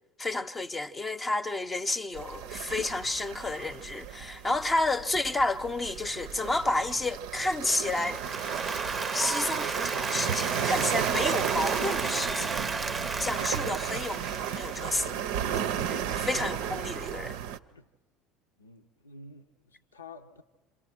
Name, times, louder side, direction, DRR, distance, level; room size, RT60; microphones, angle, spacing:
voice 1, 0.2-8.2 9.1-12.6 13.2-15.2 15.8-17.4, left 2 dB, 25° left, 0.7 m, -31 dB
sound 1, 2.1-17.6, right 9 dB, 70° right, 0.6 m, -34 dB
Applause, 8.0-15.2, right 3 dB, 20° right, 0.6 m, -34 dB
voice 2, 18.6-20.4, left 3 dB, 90° left, 0.7 m, -50 dB
27.5 x 27.0 x 4.5 m
hypercardioid pair, 65°, 0 cm